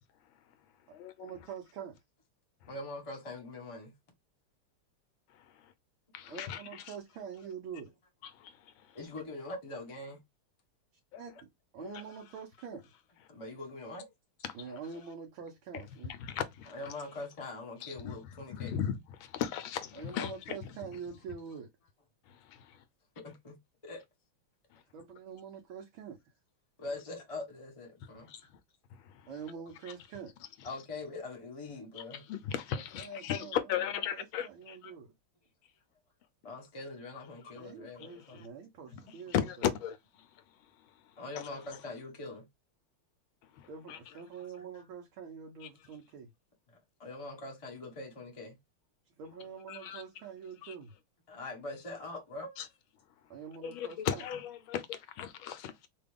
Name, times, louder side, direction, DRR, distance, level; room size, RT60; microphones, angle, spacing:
voice 1, 0.2-0.6 0.9-1.4 2.6-2.7 5.3-5.7 6.1-7.0 8.2-9.0 11.1-11.3 11.8-12.0 14.4-15.0 15.7-16.9 17.8-21.0 22.2-22.8 24.7-24.8 28.0-28.6 28.9-29.5 29.9-30.0 30.6-30.8 31.9-34.9 36.5-36.6 38.0-38.5 38.9-41.8 43.4-44.1 44.4-44.5 45.6-45.7 49.7-50.0 50.6-50.7 52.6-52.7 53.2-55.9, left 9 dB, 75° left, 1.3 m, -38 dB
voice 2, 0.9-2.0 6.3-7.9 11.2-11.5 11.7-12.8 14.5-16.1 20.0-21.7 24.9-26.2 29.3-30.3 32.9-33.6 34.1-35.1 37.6-39.7 43.7-46.3 49.2-50.9 53.3-54.2, right 7 dB, 70° right, 1.6 m, -45 dB
voice 3, 2.7-3.9 8.9-10.2 13.3-14.1 16.7-18.8 23.2-23.5 23.8-24.0 26.8-28.3 30.6-32.2 36.4-38.4 39.0-39.1 41.2-42.4 44.6-44.8 47.0-48.6 51.3-52.6, left 2 dB, 20° left, 0.9 m, -43 dB
3.9 x 2.3 x 3.4 m
omnidirectional pair, 2.4 m